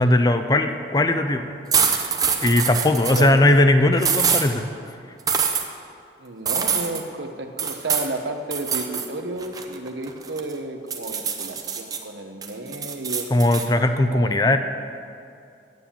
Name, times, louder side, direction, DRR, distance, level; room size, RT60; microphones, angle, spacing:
voice 1, 0.0-1.6 2.4-5.0 13.3-14.6, left 1 dB, 20° left, 8 dB, 0.5 m, -19 dB
sound 1, 1.7-3.3 4.0-4.5 5.3-5.6 6.5-7.0 7.6-8.1 8.5-9.1 9.4-10.5 10.9-12.0 12.4-13.7, right 6 dB, 20° right, 0.6 m, -24 dB
voice 2, 3.1-3.5 6.2-13.3 14.0-14.6, right 2 dB, 75° right, 6 dB, 0.9 m, -32 dB
9.2 x 9.0 x 7.0 m, 2.5 s
head